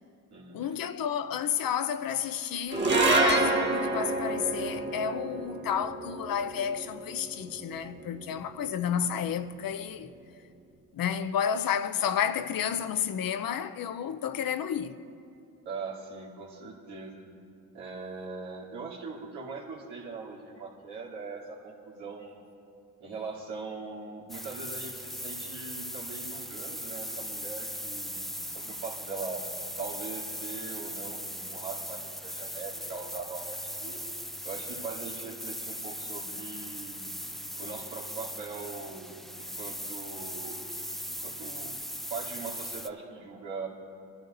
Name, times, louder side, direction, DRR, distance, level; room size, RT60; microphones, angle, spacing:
voice 1, 0.5-10.1 10.9-14.9, left 8 dB, 60° left, 0.8 m, -31 dB
sound 1, 2.7-9.2, right 2 dB, 30° right, 2.1 m, -29 dB
voice 2, 15.6-17.2 17.7-22.4 23.0-29.5 29.8-34.0 34.4-37.1 37.6-40.6 41.2-41.8 42.1-43.7, right 4 dB, 80° right, 2.9 m, -41 dB
sound 2, 24.3-42.9, equal, ahead, 0.5 m, -39 dB
25.5 x 12.0 x 2.7 m
supercardioid pair, 50°, 39 cm